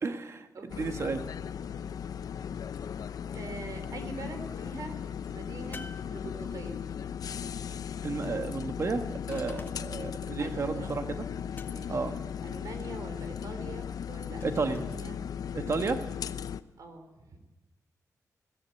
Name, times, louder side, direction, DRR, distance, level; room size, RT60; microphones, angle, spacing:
voice 1, 0.0-0.5 0.8-1.2 8.0-9.0 9.3-11.2 11.9-12.1 14.4-14.8 15.5-16.0, right 4 dB, 50° right, 7 dB, 1.6 m, -32 dB
voice 2, 0.5-0.9 3.3-5.0 5.3-5.8 6.1-6.8 9.5-9.7 10.4-11.0 11.7-12.0 12.4-15.2 16.8-17.4, right 3 dB, 70° right, 6 dB, 3.6 m, -44 dB
sound 1, 0.7-16.6, left 8 dB, 90° left, 0.7 m, -37 dB
sound 2, 5.7-6.8 9.3-10.1 11.5-12.1 14.4-15.1, left 3 dB, 35° left, 1.6 m, -49 dB
21.5 x 17.0 x 8.4 m, 1.1 s
wide cardioid pair, 155°, 6 cm